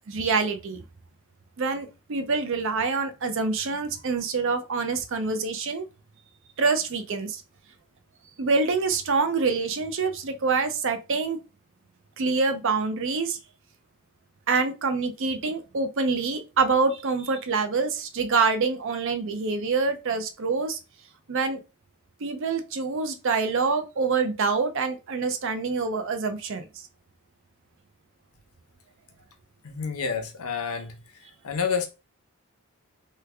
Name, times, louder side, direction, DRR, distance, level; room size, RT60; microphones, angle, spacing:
voice 1, 0.1-0.8 1.6-5.9 6.6-7.4 8.4-11.4 12.2-13.4 14.5-20.8 21.3-21.6 22.2-26.6, right 4 dB, 60° right, 0.5 m, -26 dB
voice 2, 29.6-31.0 31.4-31.9, left 6 dB, 75° left, 0.8 m, -28 dB
3.2 x 2.2 x 3.3 m
head